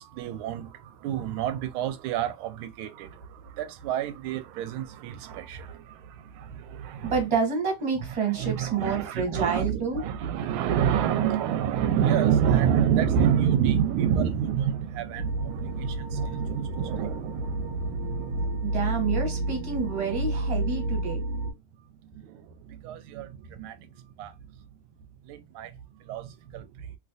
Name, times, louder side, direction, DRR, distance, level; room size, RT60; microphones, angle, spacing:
voice 1, 0.0-7.2 8.3-19.3 22.1-24.3 25.2-27.0, right 9 dB, 90° right, 1.4 m, -28 dB
voice 2, 7.0-10.0 18.6-21.2, right 5 dB, 20° right, 0.8 m, -28 dB
sound 1, 15.2-21.5, right 1 dB, 75° right, 1.2 m, -30 dB
3.2 x 2.7 x 2.5 m
omnidirectional pair, 2.2 m